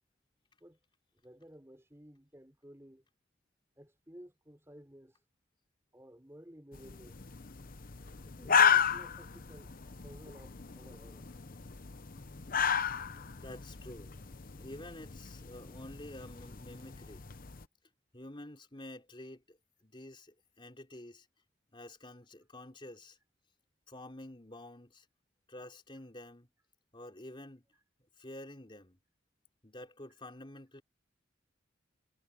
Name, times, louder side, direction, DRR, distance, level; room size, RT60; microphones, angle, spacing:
voice 1, 1.2-3.0 3.8-5.2 5.9-7.2 8.3-9.7 10.0-11.3, equal, 15° right, 4.9 m, -54 dB
sound 1, 6.7-17.6, left 7 dB, 45° left, 0.9 m, -34 dB
voice 2, 13.4-14.1 14.5-17.3 18.1-21.3 21.7-23.2 23.9-25.1 25.5-26.5 26.9-27.6 28.2-29.0 29.6-30.8, left 1 dB, 25° left, 3.8 m, -49 dB
head